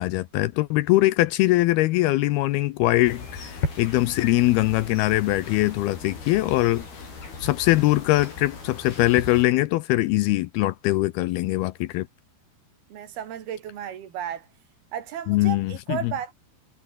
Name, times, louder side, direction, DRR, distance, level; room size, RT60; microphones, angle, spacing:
voice 1, 0.0-6.9 7.4-12.1 15.3-16.1, left 18 dB, 80° left, 2.4 m, -22 dB
sound 1, 3.0-9.5, left 4 dB, 65° left, 9.5 m, -37 dB
voice 2, 12.9-14.5 14.9-16.3, right 9 dB, 65° right, 4.0 m, -34 dB
omnidirectional pair, 4.9 m